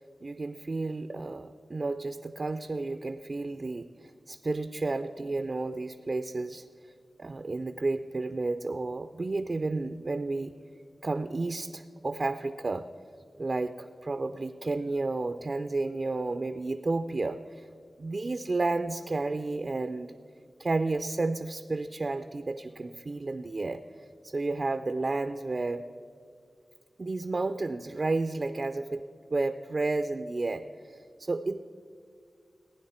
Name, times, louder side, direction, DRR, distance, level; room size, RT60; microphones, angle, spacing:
voice 1, 0.2-6.6 7.2-10.5 11.0-12.9 13.4-17.7 18.0-20.1 20.6-23.8 24.2-25.8 27.0-31.6, right 3 dB, 50° right, 10 dB, 0.4 m, -32 dB
15.5 x 9.8 x 4.3 m, 2.3 s
cardioid pair, 60°, 0 cm